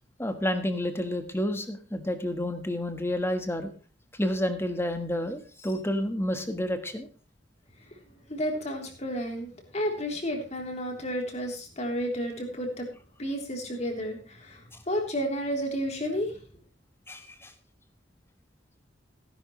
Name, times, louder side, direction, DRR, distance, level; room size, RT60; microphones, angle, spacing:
voice 1, 0.2-3.7 4.2-7.1 17.1-17.5, left 1 dB, 15° left, 8 dB, 1.4 m, -30 dB
voice 2, 8.3-9.5 9.7-12.9 13.2-14.6 14.9-16.3, equal, 40° left, 2 dB, 3.5 m, -31 dB
17.0 x 10.5 x 3.2 m, 0.37 s
head